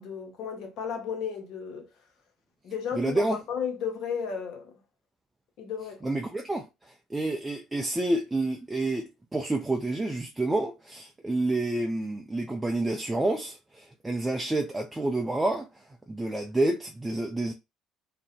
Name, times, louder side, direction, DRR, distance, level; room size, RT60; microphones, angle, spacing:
voice 1, 0.0-1.9 2.6-4.7 5.6-6.0, left 7 dB, 60° left, 0.8 m, -34 dB
voice 2, 3.0-3.4 6.0-6.7 7.1-17.5, right 2 dB, 15° right, 0.5 m, -29 dB
2.5 x 2.1 x 2.8 m
hypercardioid pair, 60°, 0 cm